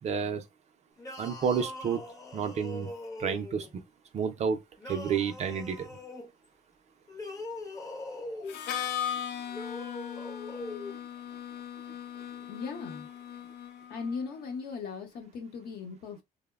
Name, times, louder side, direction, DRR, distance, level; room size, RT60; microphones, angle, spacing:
voice 1, 0.0-0.4 1.2-2.0 2.3-2.9 3.2-3.8 4.1-4.6 4.9-5.9, right 6 dB, 40° right, 0.4 m, -30 dB
sound 1, 1.0-3.7 4.8-6.3 7.1-8.6 9.5-11.0, left 2 dB, 20° left, 0.6 m, -41 dB
Harmonica, 8.5-14.2, left 9 dB, 85° left, 0.4 m, -38 dB
voice 2, 12.5-13.1 13.9-16.2, left 5 dB, 65° left, 0.8 m, -38 dB
2.8 x 2.0 x 2.3 m
cardioid pair, 110°, 17 cm